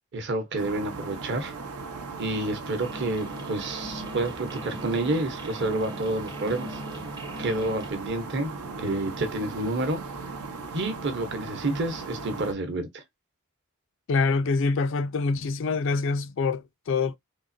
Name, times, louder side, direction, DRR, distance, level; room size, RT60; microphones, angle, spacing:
voice 1, 0.1-1.5 2.2-6.8 7.4-8.5 8.8-10.0 10.7-13.0, right 2 dB, 50° right, 0.9 m, -29 dB
sound 1, 0.6-12.5, right 4 dB, 90° right, 0.8 m, -38 dB
sound 2, 2.8-7.9, left 1 dB, 20° right, 0.6 m, -41 dB
voice 2, 14.1-17.2, left 4 dB, 55° left, 0.3 m, -25 dB
3.7 x 2.9 x 2.6 m
head